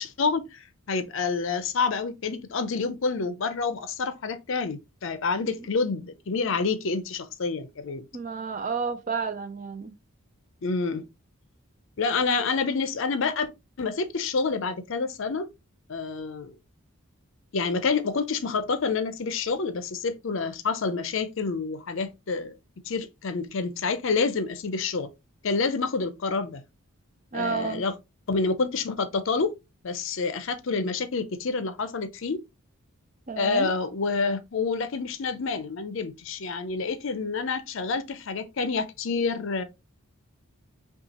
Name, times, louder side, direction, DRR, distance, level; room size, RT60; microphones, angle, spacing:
voice 1, 0.0-8.0 10.6-11.0 12.0-13.5 13.8-15.5 15.9-16.6 17.5-22.6 22.8-25.1 25.4-26.6 27.3-27.9 28.3-29.5 29.8-32.4 33.4-39.6, left 4 dB, 60° left, 0.5 m, -28 dB
voice 2, 8.1-9.9 27.3-27.8 33.3-33.7, right 5 dB, 35° right, 0.4 m, -31 dB
5.5 x 2.4 x 2.9 m
head